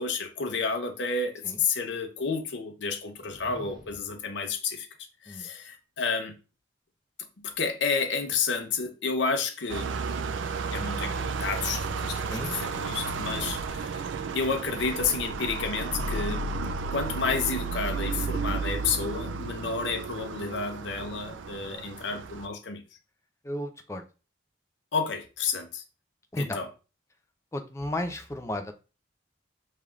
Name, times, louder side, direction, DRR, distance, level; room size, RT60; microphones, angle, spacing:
voice 1, 0.0-4.9 5.2-6.3 7.4-9.9 10.7-14.0 14.3-16.5 16.9-22.8 24.9-25.8 26.4-26.7, left 5 dB, 70° left, 0.7 m, -30 dB
sound 1, 3.0-4.3, right 1 dB, 25° right, 1.0 m, -49 dB
sound 2, 9.7-22.5, right 4 dB, 80° right, 0.4 m, -33 dB
voice 2, 23.4-24.0 26.3-26.6 27.5-28.7, left 1 dB, 15° left, 0.4 m, -33 dB
5.2 x 3.2 x 2.4 m
head